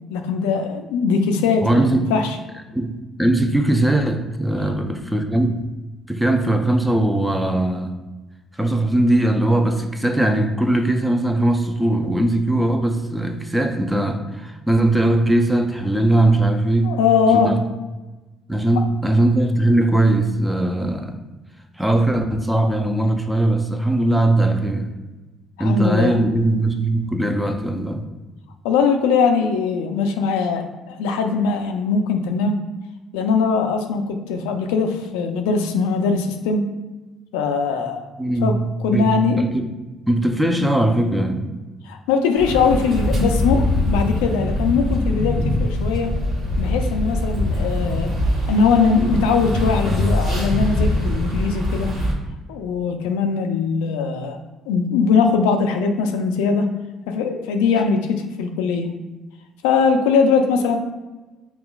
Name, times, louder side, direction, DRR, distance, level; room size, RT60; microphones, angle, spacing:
voice 1, 0.1-2.4 16.8-17.6 25.6-26.2 28.6-32.6 33.1-36.7 37.3-38.1 38.4-38.5 38.8-39.4 41.9-46.1 46.6-48.1 48.5-51.9 52.5-54.4 54.7-56.7 57.1-58.9 59.6-60.8, left 5 dB, 90° left, 5 dB, 0.4 m, -20 dB
voice 2, 1.6-2.0 2.7-5.7 6.1-7.9 8.6-17.0 17.3-17.6 18.5-21.2 21.8-24.9 25.6-28.1 38.2-39.7 40.1-41.6, right 1 dB, 5° right, 5 dB, 0.5 m, -20 dB
sound 1, 42.4-52.1, left 1 dB, 60° right, 1.1 m, -22 dB
5.4 x 2.4 x 2.3 m, 1.2 s
supercardioid pair, 65°, 0 cm